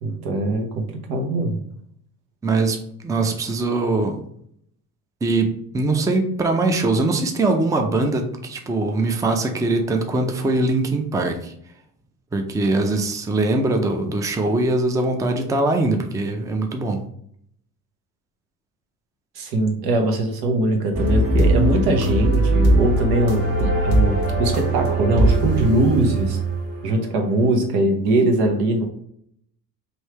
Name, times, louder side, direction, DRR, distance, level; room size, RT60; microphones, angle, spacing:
voice 1, 0.0-1.6 19.4-26.4 26.8-28.9, right 1 dB, 80° right, 4 dB, 1.0 m, -21 dB
voice 2, 2.4-4.2 5.2-11.5 12.3-17.0, right 2 dB, 10° right, 5 dB, 0.4 m, -22 dB
sound 1, 20.9-27.0, right 2 dB, 40° right, 1.2 m, -20 dB
3.2 x 2.7 x 4.4 m, 0.69 s
cardioid pair, 100°, 38 cm